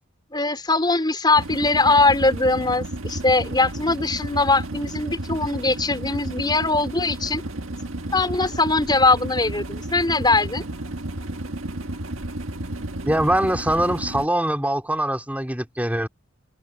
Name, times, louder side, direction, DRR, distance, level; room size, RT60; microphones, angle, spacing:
voice 1, 0.3-7.4 8.1-10.6, left 3 dB, 20° left, 4.5 m, -21 dB
sound 1, 1.3-14.3, right 1 dB, 70° right, 1.7 m, -32 dB
voice 2, 13.0-16.1, right 1 dB, 5° right, 3.7 m, -23 dB
head